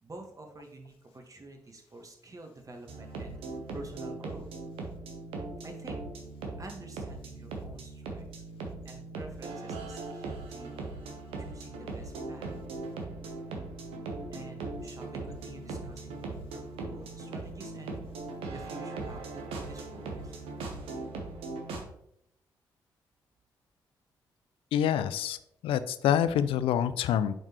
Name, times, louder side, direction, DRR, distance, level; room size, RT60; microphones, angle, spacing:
voice 1, 0.0-3.3 3.7-4.5 5.6-6.0 6.6-8.4 8.8-10.8 11.4-12.6 14.3-17.9 18.5-20.3, right 2 dB, 35° right, 3 dB, 1.5 m, -48 dB
sound 1, 2.9-21.8, right 3 dB, 80° right, 0.9 m, -39 dB
voice 2, 24.7-25.4 25.6-27.3, left 9 dB, 75° left, 14 dB, 0.4 m, -26 dB
8.9 x 3.8 x 3.0 m, 0.76 s
hypercardioid pair, 45°, 9 cm